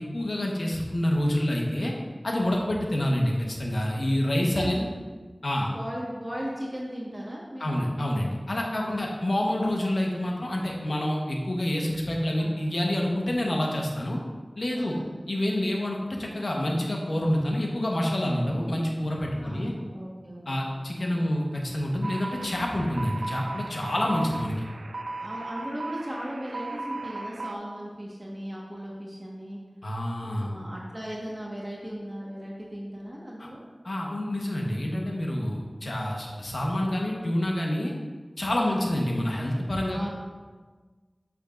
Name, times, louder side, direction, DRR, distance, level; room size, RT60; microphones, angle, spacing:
voice 1, 0.0-1.9 2.2-4.8 5.4-5.7 7.6-14.2 14.6-14.9 15.3-19.7 20.5-24.6 29.8-30.5 33.4-33.5 33.8-37.9 38.4-40.1, left 1 dB, 80° left, -1 dB, 1.1 m, -27 dB
voice 2, 4.5-4.9 5.6-7.7 8.8-9.3 12.4-12.5 14.7-15.2 19.3-20.8 21.1-21.4 25.2-29.6 30.3-33.6 38.5-38.8 39.9-40.1, equal, 25° right, -4 dB, 1.4 m, -37 dB
sound 1, 22.0-27.6, right 2 dB, 85° right, 0.3 m, -37 dB
8.6 x 6.4 x 2.5 m, 1.4 s
wide cardioid pair, 55°, 0 cm